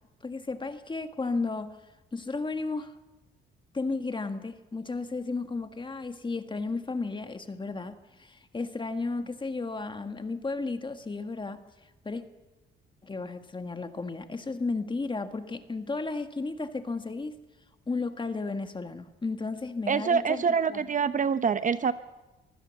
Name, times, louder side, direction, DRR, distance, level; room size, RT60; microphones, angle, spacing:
voice 1, 0.2-1.8 2.1-2.9 3.7-11.6 12.0-12.2 13.0-17.3 17.9-20.4 20.7-20.9, left 3 dB, 25° left, 8 dB, 1.7 m, -33 dB
voice 2, 19.9-21.9, right 6 dB, 40° right, 13 dB, 0.8 m, -25 dB
24.5 x 15.5 x 7.1 m, 1.1 s
cardioid pair, 90°, 20 cm